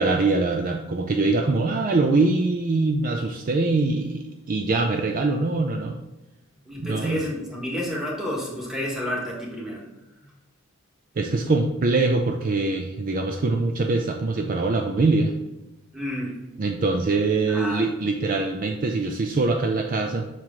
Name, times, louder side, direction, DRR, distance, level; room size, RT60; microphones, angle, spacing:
voice 1, 0.0-6.0 6.8-7.2 11.2-15.3 16.6-20.3, right 3 dB, 40° right, 3 dB, 0.4 m, -23 dB
voice 2, 6.7-9.8 15.9-16.4 17.5-17.9, left 1 dB, ahead, -4 dB, 1.4 m, -30 dB
5.8 x 4.6 x 3.7 m, 1.0 s
head